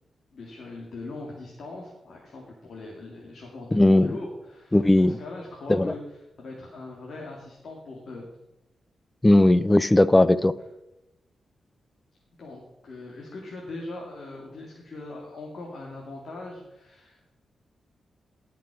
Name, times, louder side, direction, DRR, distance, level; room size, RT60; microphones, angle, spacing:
voice 1, 0.3-8.2 12.4-17.3, left 2 dB, 60° left, -2 dB, 2.3 m, -40 dB
voice 2, 3.7-4.1 4.7-5.2 5.7-5.9 9.2-10.5, left 1 dB, 15° left, 16 dB, 0.5 m, -18 dB
17.0 x 6.0 x 4.9 m, 0.94 s
cardioid pair, 90°, 0 cm